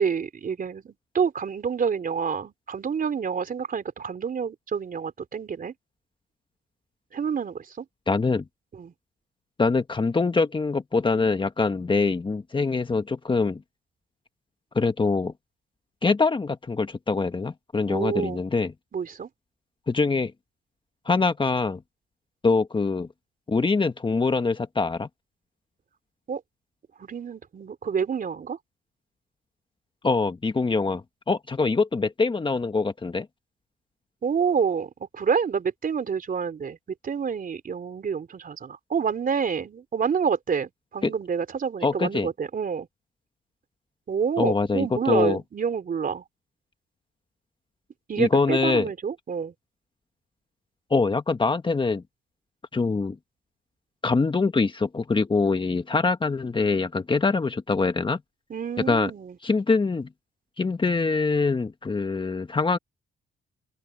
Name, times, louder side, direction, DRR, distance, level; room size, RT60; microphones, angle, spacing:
voice 1, 0.0-5.7 7.1-7.9 8.7-8.9 17.9-18.4 18.9-19.3 26.3-26.4 27.0-28.6 34.2-36.8 37.0-42.9 44.1-46.2 48.1-49.5 58.5-59.4, right 6 dB, 45° right, 3.9 m, -28 dB
voice 2, 8.1-8.4 9.6-13.6 14.7-15.3 16.0-18.7 19.9-20.3 21.0-21.8 22.4-23.1 23.5-25.1 30.0-33.3 41.0-41.1 41.8-42.3 44.4-45.4 48.2-48.9 50.9-52.0 52.7-53.2 54.0-58.2 58.8-59.1 59.4-60.1 60.6-62.8, left 4 dB, 25° left, 1.5 m, -24 dB
open air
cardioid pair, 90°, 20 cm